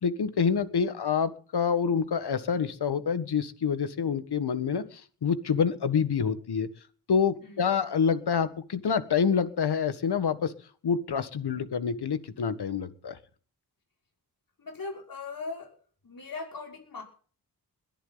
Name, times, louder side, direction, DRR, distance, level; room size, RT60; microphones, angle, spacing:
voice 1, 0.0-6.7 7.1-10.5 10.8-13.2, left 6 dB, 70° left, 12 dB, 1.7 m, -27 dB
voice 2, 14.6-15.7 16.0-17.0, left 3 dB, 55° left, 0 dB, 6.0 m, -39 dB
21.5 x 11.5 x 4.0 m, 0.42 s
cardioid pair, 65°, 40 cm